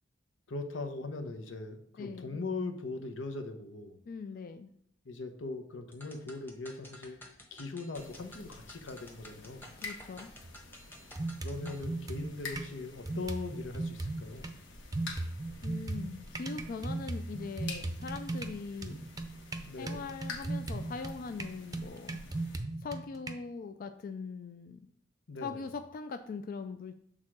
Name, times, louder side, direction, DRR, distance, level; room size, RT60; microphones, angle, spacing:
voice 1, 0.5-4.0 5.0-9.7 11.4-14.6 19.7-20.1 25.3-25.6, left 3 dB, 90° left, 6 dB, 0.9 m, -40 dB
voice 2, 2.0-2.4 4.1-4.7 9.8-10.3 15.6-19.0 19.8-22.2 22.8-24.9 25.4-26.9, left 4 dB, 50° left, 8 dB, 0.3 m, -41 dB
sound 1, 5.9-11.8, equal, 10° left, 1.0 m, -53 dB
sound 2, 7.9-22.6, left 3 dB, 70° left, 1.3 m, -49 dB
sound 3, 10.4-10.6 11.2-12.7 13.1-14.5 14.9-23.3, right 2 dB, 20° right, 0.5 m, -37 dB
6.5 x 3.7 x 6.1 m, 0.67 s
head